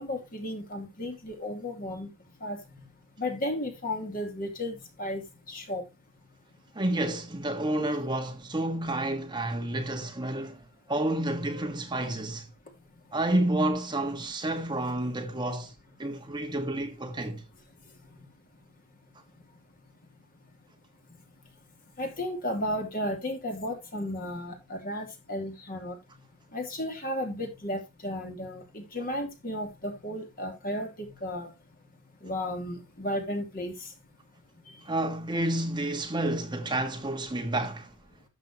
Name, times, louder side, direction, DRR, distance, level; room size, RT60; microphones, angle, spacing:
voice 1, 0.0-2.1 2.4-2.6 3.2-5.2 5.5-5.8 22.0-26.0 26.5-31.5 32.2-33.7, left 1 dB, 40° left, 2.7 m, -34 dB
voice 2, 6.7-10.6 10.9-12.5 13.1-15.7 16.0-17.4 34.8-37.9, right 1 dB, 20° right, 1.4 m, -30 dB
12.5 x 7.4 x 2.9 m
head